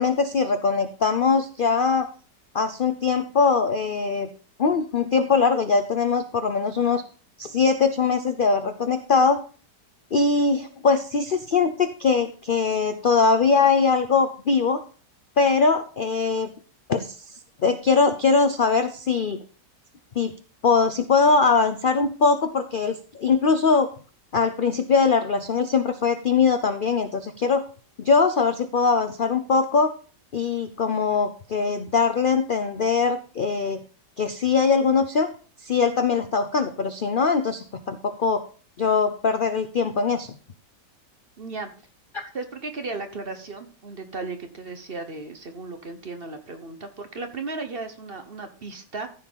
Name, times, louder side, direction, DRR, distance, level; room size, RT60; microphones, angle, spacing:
voice 1, 0.0-2.1 2.5-4.3 4.6-7.0 7.4-9.4 10.1-14.8 15.4-16.5 16.9-17.3 17.6-19.4 20.2-20.3 20.6-23.9 24.3-27.6 28.0-29.9 30.3-33.8 34.2-35.3 35.6-38.4 38.8-40.3 42.1-42.2, left 5 dB, 70° left, 9 dB, 0.5 m, -21 dB
voice 2, 41.4-41.7 42.3-49.1, right 3 dB, 40° right, 7 dB, 1.1 m, -35 dB
14.0 x 4.8 x 5.5 m, 0.39 s
omnidirectional pair, 1.9 m